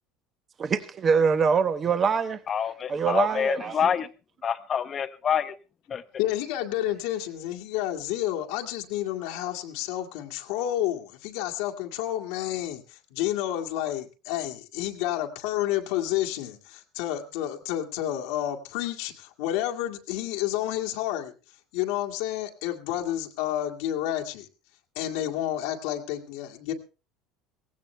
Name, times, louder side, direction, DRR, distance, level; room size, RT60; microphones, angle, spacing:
voice 1, 0.6-2.4 2.9-3.8, right 6 dB, 25° right, 1.0 m, -24 dB
voice 2, 2.5-4.1 4.4-5.5 5.9-6.2, left 8 dB, 30° left, 0.8 m, -27 dB
voice 3, 6.2-21.3 21.7-24.5 25.0-26.7, left 13 dB, 80° left, 1.9 m, -30 dB
17.5 x 16.0 x 3.3 m
cardioid pair, 145°, 0 cm